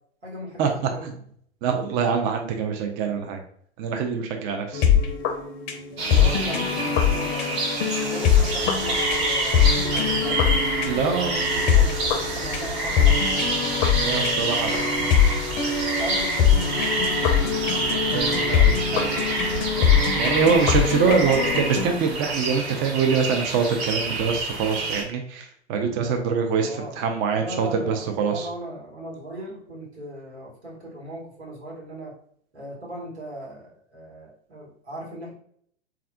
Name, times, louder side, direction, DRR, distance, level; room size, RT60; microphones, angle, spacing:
voice 1, 0.2-1.1 6.0-7.6 8.0-10.6 11.0-13.5 16.0-17.1 21.1-21.4 26.6-26.9 27.3-32.2 32.5-35.3, right 1 dB, 90° right, -4 dB, 1.4 m, -37 dB
voice 2, 1.6-3.4 3.8-4.8 10.9-11.4 14.0-15.1 18.1-19.1 20.2-28.5, right 6 dB, 35° right, 4 dB, 0.4 m, -24 dB
sound 1, 4.7-21.9, left 7 dB, 35° left, 0.5 m, -23 dB
sound 2, 6.0-25.0, right 2 dB, 50° right, 1.1 m, -27 dB
3.5 x 2.4 x 2.2 m, 0.63 s
hypercardioid pair, 100°, 33 cm